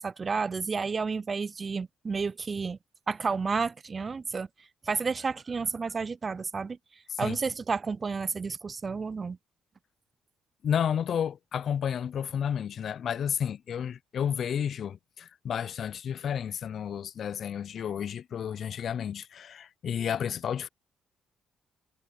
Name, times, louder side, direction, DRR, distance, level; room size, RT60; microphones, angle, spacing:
voice 1, 0.0-2.8 3.1-4.5 4.9-6.8 7.2-9.4, right 5 dB, 40° right, 0.3 m, -31 dB
voice 2, 10.6-20.7, left 8 dB, 60° left, 0.5 m, -31 dB
supercardioid pair, 55°, 0 cm